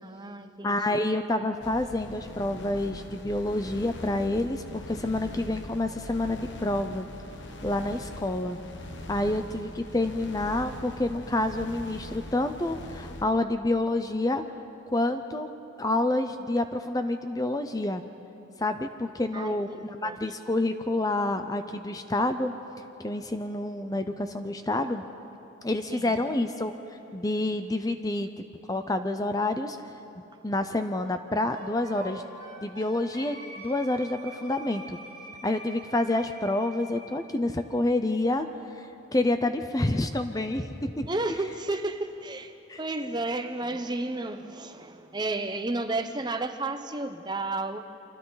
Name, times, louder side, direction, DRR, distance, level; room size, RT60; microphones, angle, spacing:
voice 1, 0.0-1.1 9.1-9.5 19.3-20.2 25.9-26.2 41.1-47.8, right 2 dB, 20° right, 8 dB, 0.8 m, -32 dB
voice 2, 0.6-7.1 7.6-8.6 9.1-14.4 14.9-15.5 15.8-18.0 18.6-22.5 23.0-25.0 25.6-26.7 27.1-28.3 28.7-29.8 30.4-32.2 32.6-35.0 35.4-38.5 38.8-41.1 42.7-42.8, left 2 dB, 20° left, 8 dB, 0.5 m, -28 dB
sound 1, 1.6-13.2, left 1 dB, 65° left, 1.3 m, -42 dB
Wind instrument woodwind instrument, 31.5-37.1, right 1 dB, 40° right, 6.3 m, -45 dB
29.5 x 25.0 x 4.0 m, 2.9 s
head